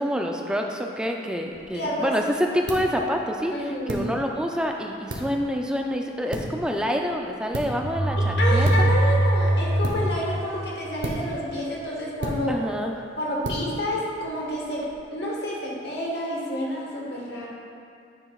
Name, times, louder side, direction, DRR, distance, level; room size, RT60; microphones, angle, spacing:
voice 1, 0.0-8.7 12.5-12.9, equal, 5° right, 2 dB, 0.4 m, -27 dB
sound 1, 1.5-14.9, right 1 dB, 70° right, 0.8 m, -36 dB
voice 2, 1.7-2.1 3.5-4.1 8.2-12.6 13.2-17.5, left 1 dB, 60° left, -4 dB, 1.4 m, -29 dB
sound 2, 7.8-10.7, right 1 dB, 50° right, 1.3 m, -22 dB
9.7 x 6.1 x 2.4 m, 2.4 s
head